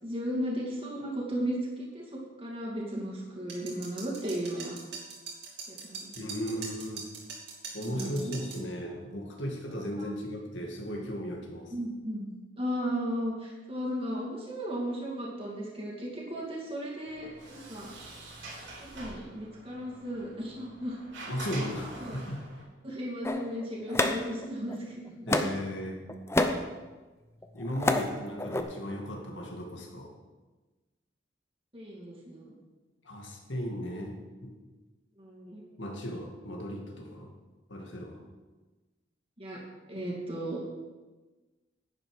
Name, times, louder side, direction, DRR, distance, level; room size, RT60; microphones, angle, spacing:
voice 1, 0.0-4.8 5.7-6.2 6.5-6.6 7.9-8.4 10.0-10.1 11.7-12.3 12.6-17.9 18.9-21.0 22.0-22.2 22.8-25.3 31.7-32.5 35.2-35.6 39.4-39.6 39.9-40.6, equal, 30° right, -4 dB, 2.5 m, -35 dB
sound 1, 3.5-8.6, right 5 dB, 60° right, 2.8 m, -42 dB
voice 2, 6.2-7.1 7.7-11.7 21.3-22.5 25.3-26.1 27.5-30.2 33.0-34.5 35.8-37.3 37.7-38.3, equal, 70° left, 1 dB, 2.2 m, -36 dB
Sliding door, 17.0-22.6, right 2 dB, 75° right, 4.4 m, -45 dB
sound 2, 23.2-24.8 25.3-25.7 26.1-26.7 27.4-28.1 28.4-28.6, left 2 dB, 15° left, 0.6 m, -28 dB
11.0 x 9.6 x 5.1 m, 1.2 s
head